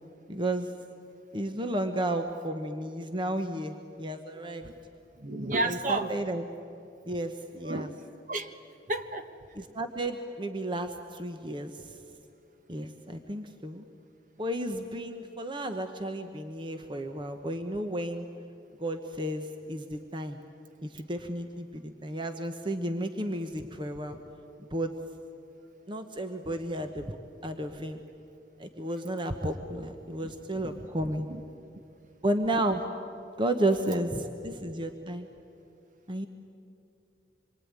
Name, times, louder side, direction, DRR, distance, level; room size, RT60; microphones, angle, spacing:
voice 1, 0.3-0.7 1.3-4.7 5.6-6.4 7.1-7.9 9.5-12.0 12.7-13.8 14.4-18.3 18.8-20.4 20.8-24.2 24.7-24.9 25.9-27.2 27.4-28.0 28.6-31.3 32.2-32.8 33.4-35.3 36.1-36.3, right 1 dB, 25° right, 6 dB, 1.1 m, -32 dB
voice 2, 5.1-6.2 7.6-7.9 8.3-8.5 8.9-9.3 30.2-30.9 31.3-31.4, right 2 dB, 45° right, 8 dB, 1.4 m, -32 dB
27.0 x 23.0 x 9.7 m, 2.7 s
head